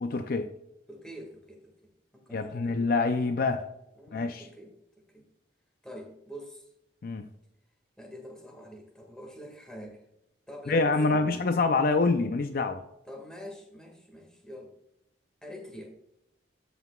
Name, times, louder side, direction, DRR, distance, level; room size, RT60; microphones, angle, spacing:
voice 1, 0.0-0.5 2.3-3.6 4.1-4.4 7.0-7.3 10.7-12.8, left 3 dB, 50° left, 8 dB, 0.5 m, -26 dB
voice 2, 0.9-1.7 2.1-2.8 4.0-4.7 5.1-5.2 5.8-6.7 8.0-10.0 10.5-11.3 13.1-14.7 15.4-15.9, equal, 5° left, 1 dB, 1.8 m, -45 dB
13.5 x 5.7 x 2.3 m, 0.82 s
head